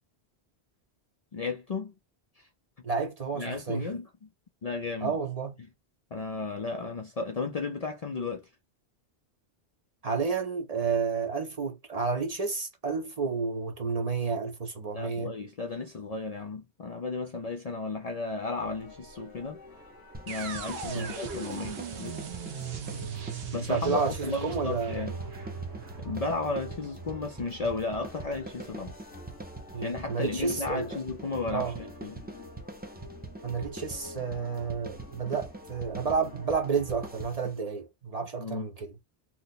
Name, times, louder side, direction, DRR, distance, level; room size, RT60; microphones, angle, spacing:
voice 1, 1.3-1.9 2.4-2.5 3.3-4.3 4.6-5.2 6.1-8.5 14.9-19.6 20.3-22.2 23.5-25.2 26.0-29.0 29.8-32.2 38.4-38.7, left 3 dB, 50° left, 0.5 m, -34 dB
voice 2, 2.8-3.9 5.0-5.6 10.0-15.3 20.9-21.1 23.7-25.0 29.7-30.9 31.5-31.8 33.4-38.9, right 5 dB, 45° right, 0.7 m, -31 dB
sound 1, 18.6-37.3, left 2 dB, 25° left, 0.8 m, -49 dB
sound 2, 20.1-37.6, right 2 dB, 15° right, 0.4 m, -44 dB
sound 3, 20.3-28.2, right 6 dB, 70° right, 0.9 m, -39 dB
2.8 x 2.1 x 4.0 m
omnidirectional pair, 1.1 m